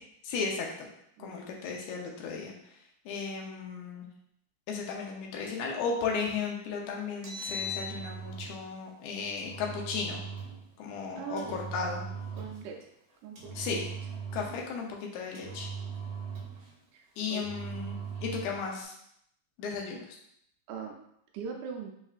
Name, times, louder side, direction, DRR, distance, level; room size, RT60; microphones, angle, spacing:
voice 1, 0.2-0.9 1.2-2.5 3.1-4.1 4.7-10.2 10.8-12.1 13.6-13.8 14.3-15.7 17.2-18.9 19.6-20.0, left 5 dB, 85° left, 0 dB, 2.1 m, -35 dB
Engine, 7.1-8.6 9.4-10.6 11.4-12.6 13.4-14.6 15.3-16.7 17.3-18.6, right 3 dB, 65° right, 1.7 m, -39 dB
voice 2, 11.2-11.6 12.3-12.8 13.2-13.8 16.9-17.0 17.3-17.4 20.7-20.9 21.3-21.9, right 6 dB, 90° right, 0 dB, 2.1 m, -40 dB
5.4 x 3.5 x 2.4 m, 0.73 s
omnidirectional pair, 3.4 m